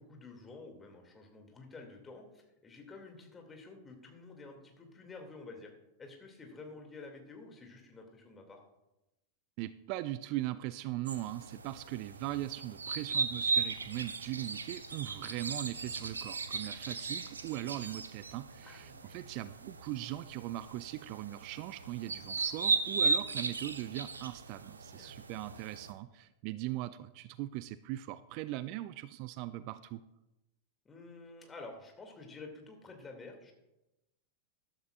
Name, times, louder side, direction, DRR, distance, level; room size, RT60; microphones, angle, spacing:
voice 1, 0.0-5.7 6.0-8.6 18.6-19.4 25.0-25.6 30.8-33.5, left 3 dB, 15° left, 3 dB, 2.2 m, -50 dB
voice 2, 9.6-30.0, right 15 dB, 45° right, 14 dB, 0.4 m, -40 dB
sound 1, 11.1-25.9, right 4 dB, 75° right, 0.8 m, -37 dB
14.0 x 12.0 x 2.4 m, 0.96 s
figure-of-eight pair, 90°, 0 cm